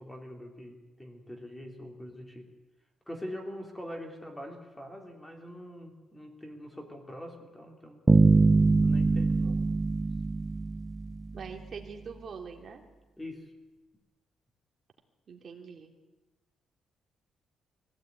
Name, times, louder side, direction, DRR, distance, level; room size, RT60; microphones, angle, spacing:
voice 1, 0.0-2.5 3.1-8.0 8.8-9.6 13.2-13.5, equal, 10° left, 2 dB, 3.2 m, -43 dB
sound 1, 8.1-11.5, right 3 dB, 15° right, 0.6 m, -23 dB
voice 2, 11.3-12.8 15.3-15.9, right 6 dB, 40° right, 3 dB, 3.0 m, -43 dB
23.0 x 16.5 x 9.4 m, 1.2 s
cardioid pair, 165°, 0 cm